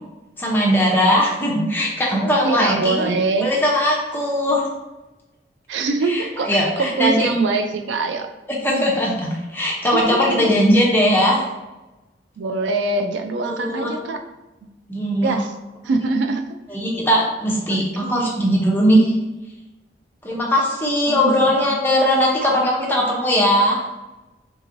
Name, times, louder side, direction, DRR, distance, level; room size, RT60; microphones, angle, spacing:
voice 1, 0.4-3.1 3.4-4.7 6.1-7.3 8.6-11.5 13.4-13.9 14.9-15.4 16.7-19.1 20.2-23.8, equal, 10° left, -3 dB, 0.7 m, -19 dB
voice 2, 2.4-3.5 5.7-8.3 9.8-10.6 12.4-14.2 14.6-14.7 15.2-15.5 15.8-16.4 17.7-18.5 21.1-21.8, right 3 dB, 80° right, 7 dB, 0.3 m, -24 dB
3.5 x 3.0 x 2.5 m, 1.1 s
head